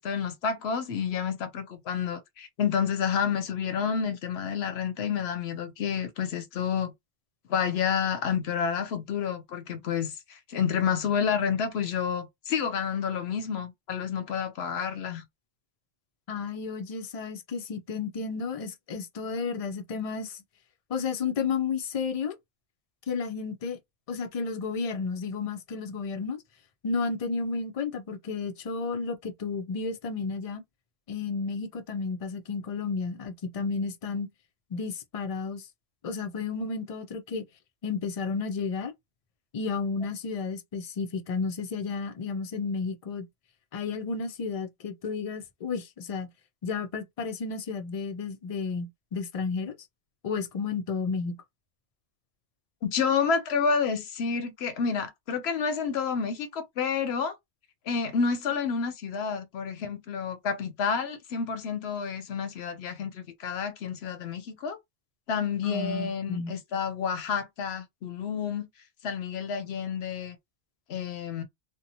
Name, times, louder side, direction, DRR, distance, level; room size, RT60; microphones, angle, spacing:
voice 1, 0.0-6.9 7.5-15.2 52.8-57.3 57.9-64.8 65.3-68.7 69.0-70.4 70.9-71.4, left 6 dB, 75° left, 0.8 m, -29 dB
voice 2, 16.3-20.4 20.9-22.4 23.1-23.8 24.1-26.4 26.8-30.6 31.1-34.3 34.7-35.7 36.0-37.4 37.8-38.9 39.5-43.3 43.7-46.3 46.6-49.8 50.2-51.4 65.6-66.5, left 5 dB, 50° left, 0.4 m, -32 dB
2.9 x 2.1 x 2.6 m
omnidirectional pair, 1.1 m